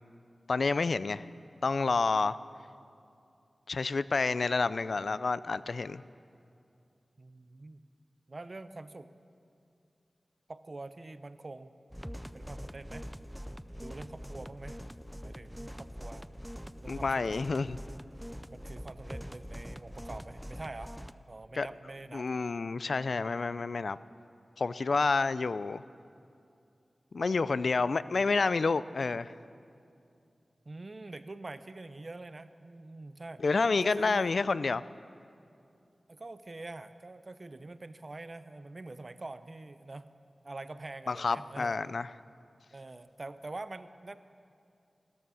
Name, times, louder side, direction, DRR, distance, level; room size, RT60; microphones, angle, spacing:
voice 1, 0.5-1.3 1.6-2.4 3.7-6.0 16.9-17.8 21.6-21.7 22.1-24.0 24.6-25.8 27.1-29.3 33.4-34.8 41.1-42.1, left 4 dB, 75° left, 17 dB, 0.3 m, -29 dB
voice 2, 7.2-7.8 8.3-9.1 10.5-11.7 12.3-13.1 13.7-14.8 15.2-16.2 16.8-17.4 18.5-20.9 21.3-22.3 28.0-28.1 30.7-33.4 33.8-34.3 36.1-40.1 40.4-41.8 42.7-44.2, right 2 dB, 45° right, 12 dB, 0.6 m, -45 dB
sound 1, 11.9-21.1, equal, ahead, 0.4 m, -44 dB
13.5 x 12.5 x 6.2 m, 2.5 s
wide cardioid pair, 65°, 0 cm